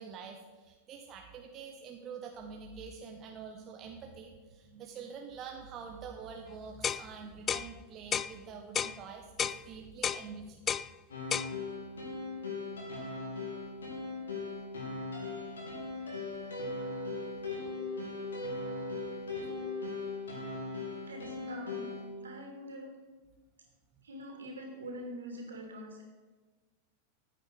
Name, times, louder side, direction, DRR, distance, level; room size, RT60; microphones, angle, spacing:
voice 1, 0.0-10.7, right 6 dB, 30° right, 3 dB, 1.2 m, -46 dB
sound 1, 6.8-7.1 7.5-7.7 8.1-8.3 8.8-9.0 9.4-9.6 10.0-10.2 10.7-10.9 11.3-11.5, left 8 dB, 25° left, 0.3 m, -31 dB
sound 2, 11.1-22.1, left 3 dB, 70° left, 3.2 m, -39 dB
voice 2, 21.1-21.9 22.2-22.9 24.0-26.0, equal, 70° right, 1 dB, 3.3 m, -44 dB
14.0 x 9.0 x 4.9 m, 1.3 s
figure-of-eight pair, 90°, 0 cm